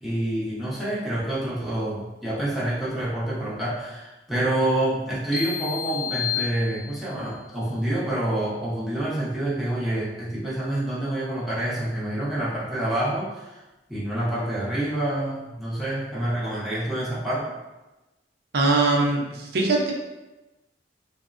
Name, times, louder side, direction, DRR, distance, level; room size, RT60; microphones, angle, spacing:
voice 1, 0.0-13.6 13.9-17.5, right 1 dB, ahead, -9 dB, 0.8 m, -27 dB
sound 1, 5.3-7.3, left 8 dB, 30° left, 0.7 m, -31 dB
voice 2, 18.5-19.9, right 2 dB, 60° right, 0 dB, 0.5 m, -21 dB
3.4 x 2.0 x 2.4 m, 1.1 s
head